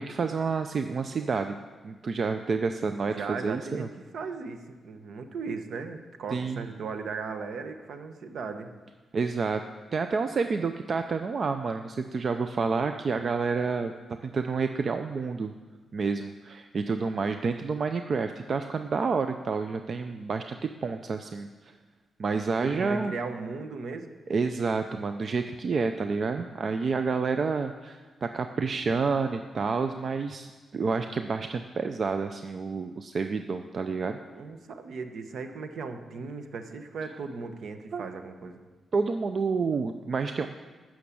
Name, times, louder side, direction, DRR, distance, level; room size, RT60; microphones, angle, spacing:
voice 1, 0.0-1.5 1.8-3.9 6.3-6.6 9.1-9.6 9.9-13.9 14.2-15.5 15.9-21.5 22.2-23.1 24.3-34.2 37.9-38.0 38.9-40.5, right 4 dB, 40° right, 7 dB, 0.4 m, -29 dB
voice 2, 3.1-8.7 22.6-24.1 34.3-38.6, right 4 dB, 65° right, 7 dB, 1.1 m, -37 dB
13.0 x 6.3 x 8.5 m, 1.4 s
wide cardioid pair, 170°, 0 cm